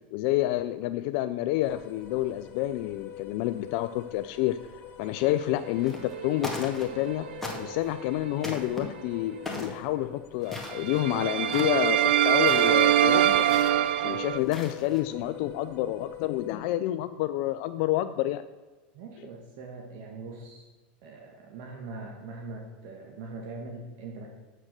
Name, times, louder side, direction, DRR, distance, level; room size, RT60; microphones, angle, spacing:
voice 1, 0.1-4.6 5.0-7.3 7.6-13.5 14.0-18.4, left 15 dB, 60° left, 11 dB, 0.4 m, -29 dB
sound 1, 1.6-16.6, left 10 dB, 40° left, 1.3 m, -46 dB
sound 2, 5.8-6.1 6.4-7.1 7.4-7.9 8.4-8.8 9.5-9.8 10.4-11.1 11.4-11.8 12.4-12.7 13.5-13.9 14.4-15.0, left 2 dB, 5° left, 1.8 m, -38 dB
sound 3, 6.1-7.9 8.2-8.4 10.7-14.4, right 11 dB, 90° right, 0.4 m, -25 dB
voice 2, 18.9-20.7 21.0-24.3, right 3 dB, 60° right, 1 dB, 1.5 m, -41 dB
7.3 x 6.5 x 6.6 m, 1.3 s
supercardioid pair, 120°, 6 cm